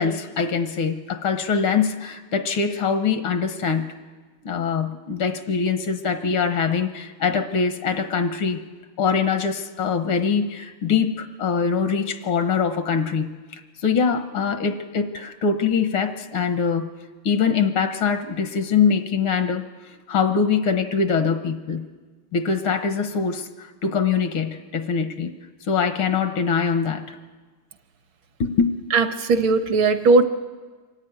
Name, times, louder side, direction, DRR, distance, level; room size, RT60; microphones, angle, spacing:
voice 1, 0.0-3.9 4.4-8.6 9.0-13.4 13.8-16.9 17.3-19.6 20.1-21.8 22.3-25.3 25.7-27.2 28.4-28.7, left 6 dB, 75° left, 8 dB, 2.0 m, -23 dB
voice 2, 28.9-30.2, right 3 dB, 70° right, 9 dB, 1.9 m, -18 dB
24.5 x 14.0 x 9.5 m, 1.4 s
omnidirectional pair, 2.4 m